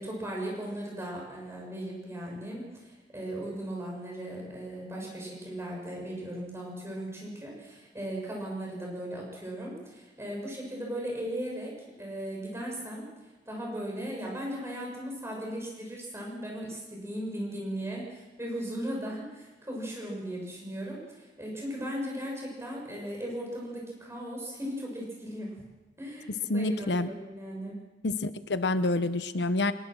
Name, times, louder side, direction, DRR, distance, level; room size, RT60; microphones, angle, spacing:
voice 1, 0.0-11.7 12.0-13.0 13.5-21.0 21.4-25.6 26.0-27.8, right 1 dB, 15° right, -2 dB, 7.1 m, -37 dB
voice 2, 26.5-27.1 28.0-29.7, left 2 dB, 75° left, 12 dB, 0.9 m, -27 dB
22.0 x 21.0 x 6.3 m, 1.2 s
head